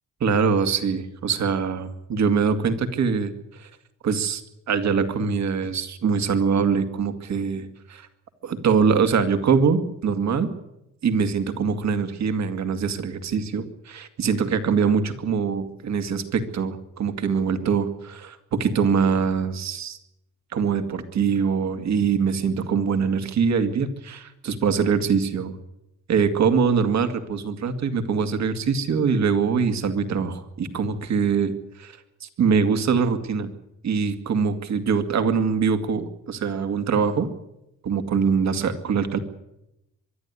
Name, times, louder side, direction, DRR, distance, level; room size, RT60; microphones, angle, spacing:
voice 1, 0.2-3.7 4.0-4.4 4.7-8.1 8.4-10.5 11.0-20.0 20.5-25.6 26.1-33.5 33.8-37.3 37.8-39.2, right 6 dB, 65° right, 8 dB, 2.3 m, -23 dB
24.0 x 11.0 x 9.8 m, 0.86 s
cardioid pair, 90°, 30 cm